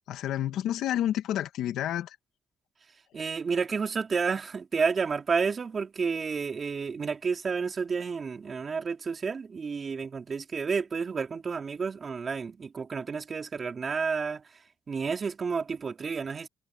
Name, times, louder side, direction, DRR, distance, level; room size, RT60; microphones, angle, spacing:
voice 1, 0.1-2.2, left 12 dB, 85° left, 1.9 m, -29 dB
voice 2, 3.1-14.6 14.9-16.5, right 5 dB, 40° right, 3.5 m, -30 dB
cardioid pair, 90°, 0 cm